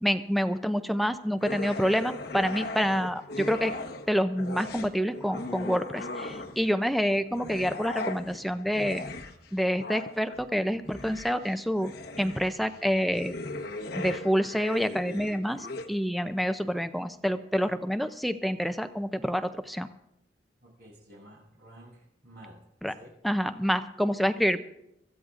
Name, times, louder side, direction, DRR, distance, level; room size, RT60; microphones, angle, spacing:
voice 1, 0.0-3.7 4.1-9.1 9.5-11.9 12.2-13.3 13.9-19.9 22.8-22.9 23.2-24.6, equal, ahead, 9 dB, 0.4 m, -27 dB
sound 1, 1.4-4.1 4.4-6.8 7.3-15.9, left 2 dB, 65° left, 1.2 m, -38 dB
voice 2, 20.6-22.6 22.9-23.1, right 1 dB, 60° right, -4 dB, 7.2 m, -51 dB
24.5 x 14.0 x 2.5 m, 0.82 s
head